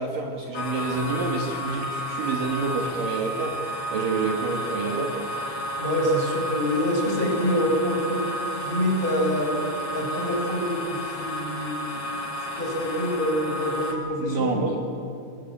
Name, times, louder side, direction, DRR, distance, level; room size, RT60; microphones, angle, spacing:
voice 1, 0.0-3.6 3.9-5.2 14.2-14.8, right 4 dB, 55° right, 1 dB, 3.2 m, -28 dB
sound 1, 0.5-13.9, equal, 80° left, 6.4 m, -32 dB
voice 2, 5.8-8.2 8.5-9.6 9.9-12.2 12.6-14.8, equal, 10° left, 0 dB, 5.1 m, -26 dB
27.5 x 22.0 x 8.7 m, 2.4 s
omnidirectional pair, 5.0 m